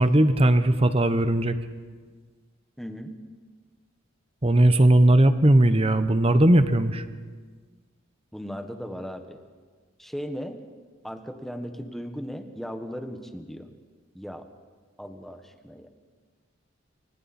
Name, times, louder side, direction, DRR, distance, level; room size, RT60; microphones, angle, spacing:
voice 1, 0.0-1.6 4.4-7.1, right 1 dB, 30° right, 11 dB, 1.0 m, -18 dB
voice 2, 2.8-3.1 8.3-9.4 10.0-10.6 11.0-13.7 14.1-14.5 15.0-15.9, equal, ahead, 6 dB, 1.4 m, -37 dB
28.0 x 25.0 x 4.4 m, 1.5 s
head